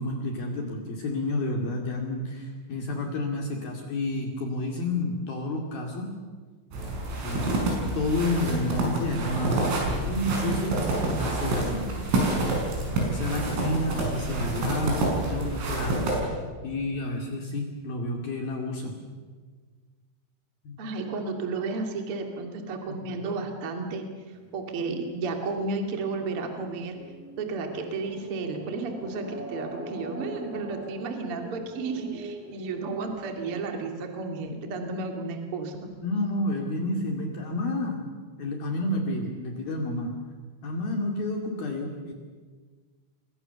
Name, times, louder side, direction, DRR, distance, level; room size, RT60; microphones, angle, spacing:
voice 1, 0.0-6.1 7.2-7.7 7.9-11.9 12.9-19.0 20.6-20.8 22.9-23.1 36.0-38.0 38.4-40.1 40.6-42.1, left 1 dB, 55° left, 1 dB, 3.7 m, -30 dB
sound 1, 6.7-16.2, right 2 dB, 75° right, 8.4 m, -28 dB
voice 2, 20.8-24.0 24.5-26.9 27.4-35.8, right 3 dB, 35° right, 4 dB, 2.5 m, -32 dB
sound 2, 24.3-33.6, right 1 dB, 5° right, 1.9 m, -42 dB
29.0 x 23.0 x 6.9 m, 1.5 s
omnidirectional pair, 5.9 m